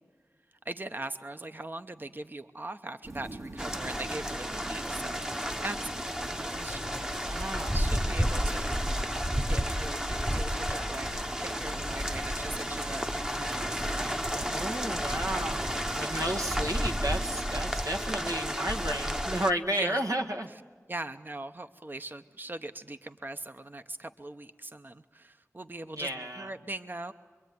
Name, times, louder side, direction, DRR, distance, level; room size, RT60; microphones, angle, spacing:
voice 1, 0.6-5.2 5.6-7.0 7.7-9.1 9.5-14.0 19.7-20.0 20.9-26.1 26.4-27.1, right 2 dB, 35° right, 8 dB, 0.8 m, -41 dB
sound 1, 3.0-17.6, right 1 dB, 65° right, 2.9 m, -45 dB
sound 2, 3.6-19.5, equal, 10° right, 0.9 m, -32 dB
sound 3, 6.7-12.1, left 3 dB, 85° left, 1.1 m, -46 dB
voice 2, 7.2-7.8 14.0-14.2 14.5-20.5 25.9-26.5, right 1 dB, 85° right, 2 dB, 1.8 m, -33 dB
26.0 x 23.0 x 9.5 m, 1.5 s
wide cardioid pair, 40°, 6 cm